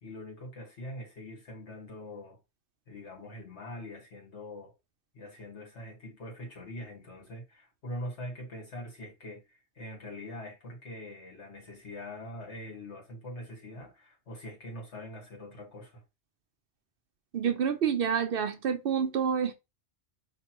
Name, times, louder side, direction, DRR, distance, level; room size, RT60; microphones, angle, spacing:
voice 1, 0.0-2.4 2.9-4.7 5.1-16.0, left 1 dB, 80° left, 2.0 m, -43 dB
voice 2, 17.3-19.5, right 7 dB, 60° right, 0.7 m, -28 dB
5.2 x 3.2 x 2.9 m
omnidirectional pair, 1.2 m